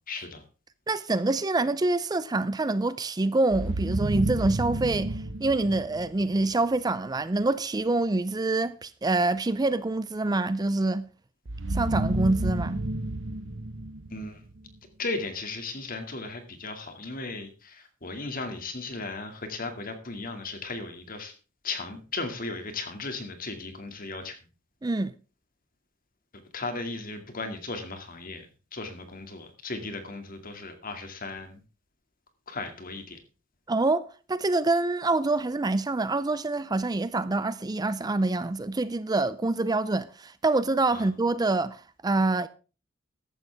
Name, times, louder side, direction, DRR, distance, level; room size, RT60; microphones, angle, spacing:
voice 1, 0.1-0.4 14.1-14.4 15.0-21.3 21.6-24.4 26.3-31.6 32.5-33.2 40.9-41.1, left 3 dB, 45° left, 2.3 m, -36 dB
voice 2, 0.9-11.1 11.7-12.9 24.8-25.1 33.7-42.5, right 2 dB, 20° right, 0.5 m, -26 dB
sound 1, 3.5-6.5 11.5-14.7, right 1 dB, 70° right, 1.1 m, -31 dB
14.5 x 11.0 x 3.5 m
head